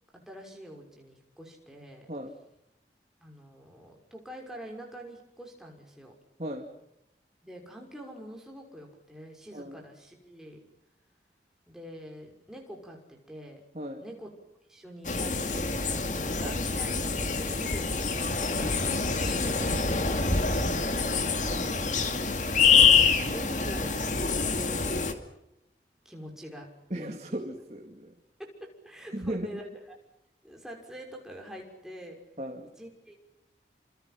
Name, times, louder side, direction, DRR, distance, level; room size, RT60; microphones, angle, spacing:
voice 1, 0.3-2.1 3.2-6.1 7.4-10.6 11.7-13.6 14.0-14.3 14.7-18.3 18.6-20.3 21.5-21.8 22.9-24.0 24.5-24.8 26.0-27.1 28.4-29.7 30.4-32.2 32.8-33.1, equal, 5° right, 0 dB, 6.1 m, -45 dB
voice 2, 6.4-6.7 9.5-9.8 13.7-14.0 16.4-16.5 26.9-28.1 29.1-29.6 32.4-32.7, right 1 dB, 40° right, 2 dB, 2.4 m, -36 dB
sound 1, 15.0-25.1, left 5 dB, 45° left, 2.4 m, -26 dB
29.5 x 27.5 x 6.0 m, 0.83 s
head